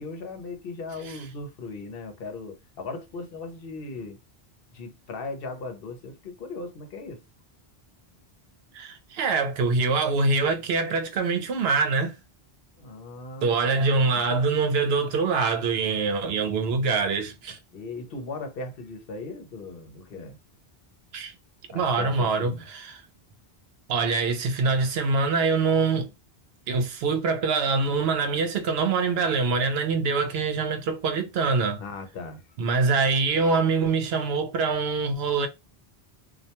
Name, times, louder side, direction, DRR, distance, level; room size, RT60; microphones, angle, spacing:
voice 1, 0.0-4.2 4.7-7.2 12.8-14.4 17.7-20.3 21.7-22.6 31.8-32.4, left 3 dB, 65° left, 0.9 m, -38 dB
voice 2, 8.7-12.1 13.4-17.6 21.1-21.3 21.7-23.0 23.9-26.1 26.7-31.8 32.6-35.5, right 4 dB, 80° right, 0.8 m, -24 dB
2.3 x 2.2 x 2.8 m
omnidirectional pair, 1.0 m